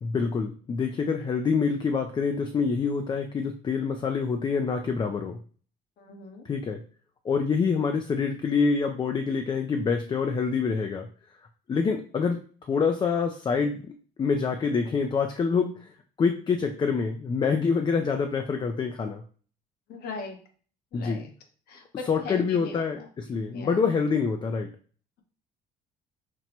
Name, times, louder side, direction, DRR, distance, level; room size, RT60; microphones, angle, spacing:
voice 1, 0.0-5.4 6.5-6.8 7.2-11.1 11.7-15.9 16.2-19.2 20.9-21.2 22.1-24.7, left 5 dB, 25° left, 5 dB, 0.3 m, -26 dB
voice 2, 6.0-6.5 19.9-20.4 20.9-21.3 21.7-23.1 23.5-23.8, left 4 dB, 70° left, 4 dB, 1.0 m, -39 dB
5.9 x 2.1 x 2.8 m, 0.44 s
cardioid pair, 110°, 17 cm